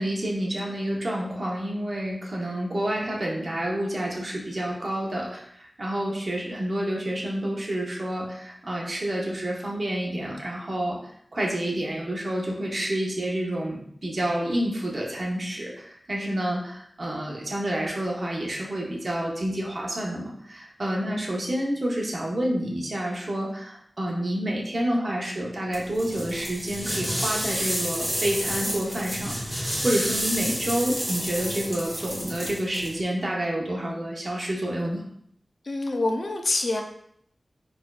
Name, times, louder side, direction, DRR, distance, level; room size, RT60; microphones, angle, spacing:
voice 1, 0.0-11.0 11.3-35.0, right 1 dB, 55° right, -2 dB, 0.8 m, -29 dB
voice 2, 24.9-25.2 35.6-36.8, left 2 dB, 65° left, 3 dB, 0.4 m, -26 dB
sound 1, 25.7-32.9, equal, 15° right, 1.3 m, -30 dB
4.2 x 2.5 x 2.3 m, 0.68 s
wide cardioid pair, 75°, 0 cm